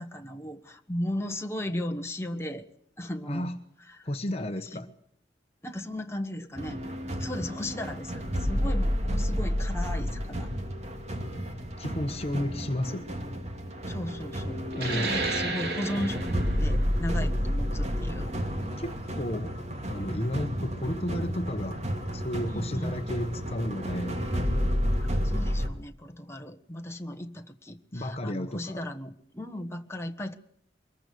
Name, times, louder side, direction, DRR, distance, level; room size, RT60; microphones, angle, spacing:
voice 1, 0.0-2.7 3.0-3.5 3.9-4.1 4.7-4.8 5.6-6.8 7.2-10.5 13.8-18.3 22.5-22.9 25.1-30.3, left 1 dB, 15° left, 1.4 m, -36 dB
voice 2, 3.3-3.6 4.0-4.9 11.8-13.2 14.7-15.2 18.8-19.6 19.9-21.9 22.1-24.2 27.9-28.8, equal, 35° left, 1.1 m, -32 dB
sound 1, 6.6-25.7, equal, 40° right, 2.5 m, -31 dB
sound 2, 14.7-19.9, right 3 dB, 65° right, 3.3 m, -34 dB
24.0 x 21.5 x 6.8 m
head